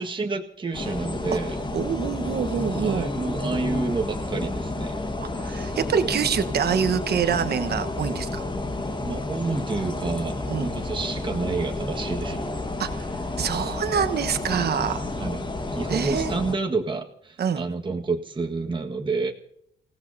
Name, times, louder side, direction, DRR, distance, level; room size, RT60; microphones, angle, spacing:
voice 1, 0.0-1.6 2.8-5.0 9.0-12.5 15.2-15.4 15.7-19.3, right 3 dB, 25° right, 1 dB, 1.6 m, -29 dB
sound 1, 0.7-16.5, left 2 dB, 25° left, 1.5 m, -30 dB
voice 2, 1.7-3.1 5.2-8.4 10.5-10.7 12.8-15.0 15.9-16.3 17.4-17.6, right 7 dB, 55° right, 9 dB, 1.3 m, -26 dB
28.5 x 17.0 x 2.8 m, 0.73 s
cardioid pair, 90°, 20 cm